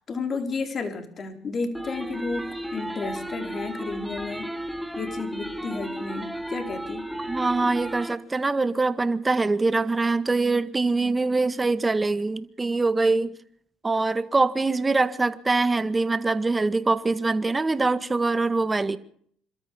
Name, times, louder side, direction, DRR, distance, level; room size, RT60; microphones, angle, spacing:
voice 1, 0.1-4.5 5.0-7.1, left 4 dB, 40° left, 4.3 m, -32 dB
sound 1, 1.7-8.1, right 1 dB, ahead, 2.3 m, -34 dB
voice 2, 7.3-13.3 13.8-19.0, right 3 dB, 20° right, 1.7 m, -23 dB
27.5 x 13.5 x 7.3 m
supercardioid pair, 75°, 0 cm